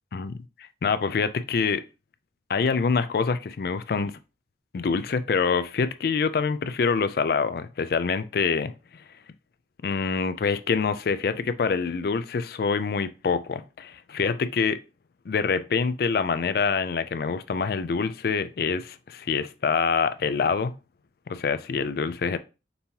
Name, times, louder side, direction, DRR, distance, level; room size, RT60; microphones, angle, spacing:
voice 1, 0.8-1.8 2.5-4.2 4.7-9.0 9.8-14.8 15.3-20.8 21.3-22.4, left 5 dB, 55° left, 0.4 m, -26 dB
5.3 x 2.8 x 2.8 m
head